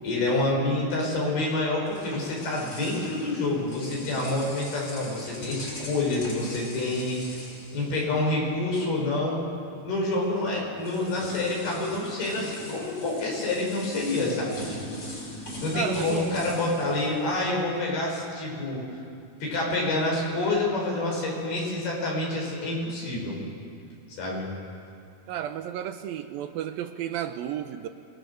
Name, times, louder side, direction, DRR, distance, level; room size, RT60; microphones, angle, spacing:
voice 1, 0.0-9.4 9.9-15.0 15.6-18.8 19.4-23.4 24.2-24.5, left 2 dB, 75° left, -2 dB, 7.3 m, -28 dB
sound 1, 1.6-8.6 8.9-9.1 10.2-10.3 10.8-17.9, left 1 dB, 40° left, 6.0 m, -41 dB
voice 2, 15.7-16.3 25.3-27.9, right 10 dB, 75° right, 8 dB, 2.4 m, -32 dB
26.0 x 20.5 x 7.0 m, 2.4 s
omnidirectional pair, 4.5 m